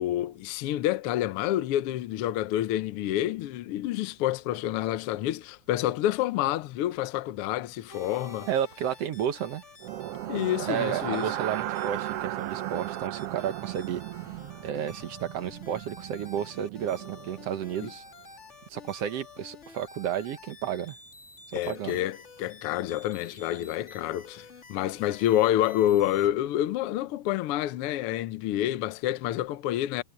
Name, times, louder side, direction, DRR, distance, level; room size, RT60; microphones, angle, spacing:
voice 1, 0.0-8.5 10.3-11.3 17.8-17.9 21.5-30.0, left 13 dB, 70° left, 1.3 m, -28 dB
sound 1, 7.9-26.3, left 3 dB, 25° left, 1.8 m, -50 dB
voice 2, 8.5-9.6 10.6-14.0 14.6-18.0 18.7-21.0 21.5-22.0, right 9 dB, 65° right, 1.8 m, -32 dB
sound 2, 9.8-17.8, right 14 dB, 80° right, 1.3 m, -36 dB
omnidirectional pair, 3.5 m